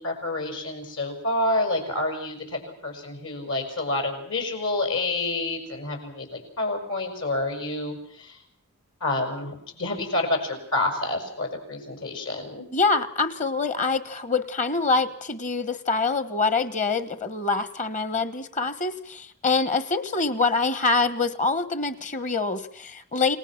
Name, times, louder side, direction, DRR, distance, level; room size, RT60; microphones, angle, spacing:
voice 1, 0.0-8.4 9.0-12.7, left 2 dB, 70° left, 4 dB, 6.4 m, -28 dB
voice 2, 12.7-23.4, left 4 dB, 35° left, 13 dB, 1.3 m, -25 dB
29.5 x 19.0 x 6.0 m, 0.62 s
head